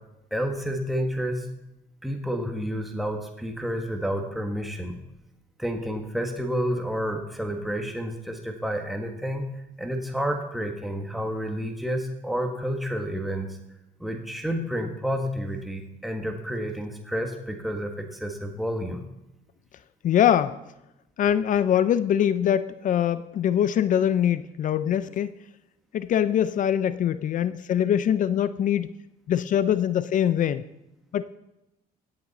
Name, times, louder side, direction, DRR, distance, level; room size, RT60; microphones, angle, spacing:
voice 1, 0.3-1.5 2.0-4.9 5.6-9.5 9.8-13.5 14.0-19.0, equal, ahead, 2 dB, 1.4 m, -30 dB
voice 2, 20.0-20.6 21.2-25.3 25.9-28.9 29.3-30.6 31.1-31.2, left 10 dB, 50° left, 14 dB, 0.5 m, -23 dB
16.5 x 8.4 x 4.1 m, 0.89 s
cardioid pair, 110°, 17 cm